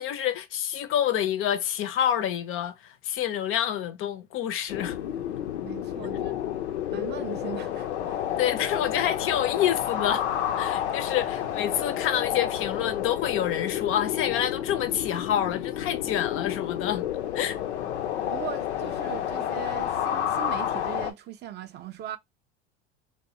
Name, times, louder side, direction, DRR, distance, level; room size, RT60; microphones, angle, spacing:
voice 1, 0.0-5.0 8.4-10.2 10.6-17.0 17.3-17.6, left 10 dB, 40° left, 0.4 m, -27 dB
sound 1, 4.7-21.1, left 10 dB, 90° left, 0.5 m, -30 dB
voice 2, 5.6-6.4 6.9-8.2 18.2-22.2, right 11 dB, 35° right, 0.4 m, -39 dB
2.2 x 2.1 x 2.7 m
hypercardioid pair, 85°, 33 cm